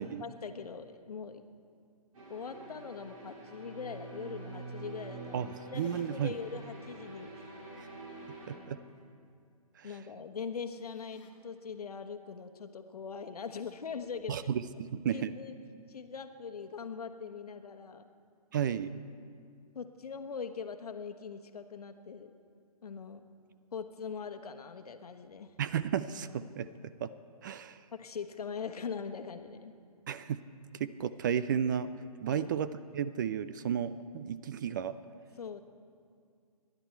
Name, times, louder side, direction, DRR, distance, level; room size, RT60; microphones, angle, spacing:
voice 1, 0.0-1.4 2.3-7.6 9.8-14.5 15.1-15.5 15.9-18.1 19.7-22.3 22.8-23.2 23.7-25.5 27.9-29.7 32.3-32.5 35.4-35.6, left 6 dB, 70° left, 8 dB, 1.2 m, -42 dB
sound 1, 2.1-8.6, right 3 dB, 60° right, 4.6 m, -46 dB
sound 2, 5.7-6.4 6.9-7.0 10.7-11.3, left 4 dB, 25° left, 1.9 m, -59 dB
voice 2, 5.7-6.3 7.8-7.9 8.5-8.8 9.8-9.9 14.3-15.3 18.5-18.9 25.6-26.7 27.0-27.1 27.4-27.8 30.1-30.4 30.7-31.9 32.2-34.9, right 8 dB, 30° right, 14 dB, 0.4 m, -33 dB
25.5 x 11.0 x 4.5 m, 2.2 s
hypercardioid pair, 145°, 20 cm